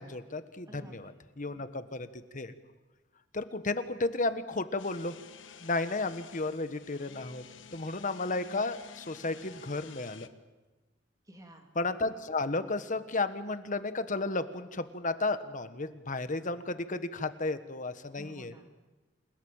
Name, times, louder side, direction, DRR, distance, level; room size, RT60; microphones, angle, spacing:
voice 1, 0.0-1.1 1.4-2.1 2.3-2.5 3.3-5.1 5.6-7.4 7.7-10.3 11.7-18.5, left 3 dB, 45° left, 11 dB, 1.4 m, -33 dB
voice 2, 0.7-1.2 11.2-11.7 18.2-18.9, equal, 20° right, 3 dB, 3.0 m, -52 dB
sound 1, 4.8-10.3, left 6 dB, 90° left, 1.2 m, -51 dB
27.5 x 17.5 x 9.0 m, 1.2 s
head